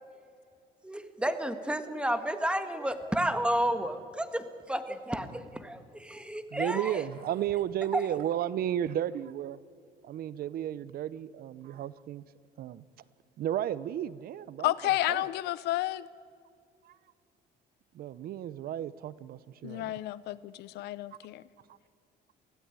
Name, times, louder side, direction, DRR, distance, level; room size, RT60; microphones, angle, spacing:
voice 1, 0.8-6.9, right 1 dB, 5° right, 9 dB, 1.7 m, -31 dB
voice 2, 6.5-9.6 10.0-12.2 12.6-12.8 13.4-14.7 15.1-15.3 16.8-17.0 17.9-20.0, right 11 dB, 65° right, 18 dB, 0.8 m, -33 dB
voice 3, 14.6-16.1 19.6-21.4, left 15 dB, 80° left, 17 dB, 0.8 m, -31 dB
24.0 x 16.0 x 9.7 m, 2.2 s
cardioid pair, 110°, 17 cm